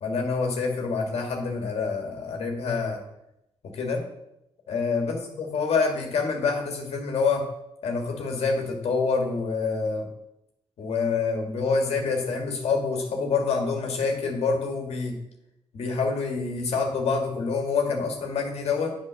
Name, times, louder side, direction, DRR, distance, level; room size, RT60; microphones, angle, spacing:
voice 1, 0.0-3.0 3.7-4.0 4.7-7.5 7.8-10.1 10.8-15.2 15.7-18.9, left 4 dB, 80° left, 2 dB, 1.7 m, -26 dB
8.2 x 4.9 x 6.2 m, 0.83 s
cardioid pair, 95°, 11 cm